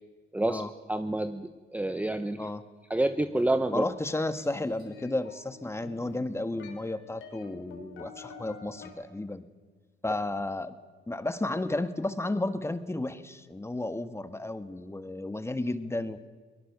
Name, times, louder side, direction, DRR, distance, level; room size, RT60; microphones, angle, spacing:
voice 1, 0.9-2.5 2.9-3.8, right 1 dB, 5° right, 9 dB, 0.9 m, -28 dB
sound 1, 3.3-8.9, left 5 dB, 80° left, 3.8 m, -49 dB
voice 2, 3.7-9.4 10.0-10.8 11.1-16.2, left 2 dB, 15° left, 10 dB, 1.5 m, -33 dB
22.5 x 20.0 x 7.0 m, 1.4 s
cardioid pair, 90°, 20 cm